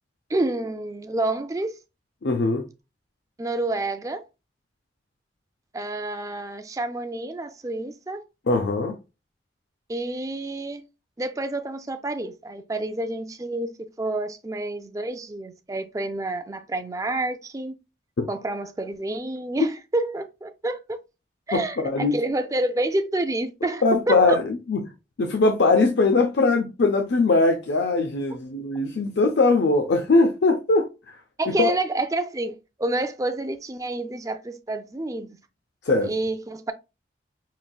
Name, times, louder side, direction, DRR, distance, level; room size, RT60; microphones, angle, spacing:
voice 1, 0.3-1.7 3.4-4.3 5.7-8.2 9.9-10.8 11.2-13.7 14.0-17.7 18.3-21.0 21.5-24.4 31.4-35.4 36.0-36.7, right 2 dB, 20° right, 0.4 m, -28 dB
voice 2, 2.2-2.6 8.5-9.0 18.2-18.3 21.5-22.2 23.8-24.9 25.2-31.2 31.6-31.7 35.8-36.1, left 3 dB, 80° left, 0.5 m, -21 dB
5.6 x 2.6 x 2.3 m
head